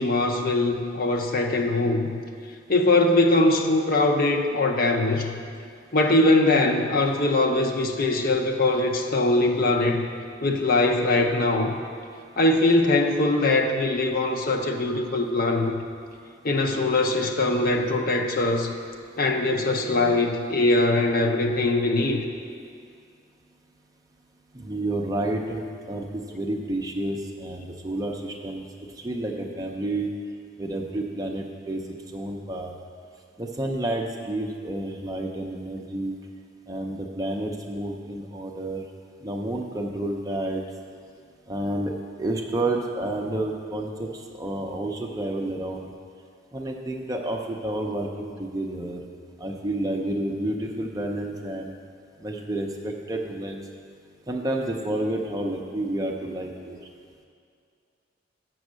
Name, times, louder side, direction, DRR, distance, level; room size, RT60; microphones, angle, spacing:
voice 1, 0.0-2.2 2.7-5.4 5.9-10.1 10.4-11.8 12.4-15.8 16.4-18.7 19.2-22.2, left 2 dB, 50° left, 3 dB, 0.6 m, -22 dB
voice 2, 24.5-25.6 25.9-28.6 29.0-30.1 30.6-31.8 32.1-32.7 33.4-36.2 36.7-38.8 39.2-40.6 41.5-41.9 42.2-44.1 44.4-45.9 46.5-49.0 49.4-51.7 52.2-53.6 54.3-56.8, right 1 dB, 20° right, 1 dB, 0.5 m, -30 dB
7.5 x 6.2 x 6.2 m, 2.3 s
head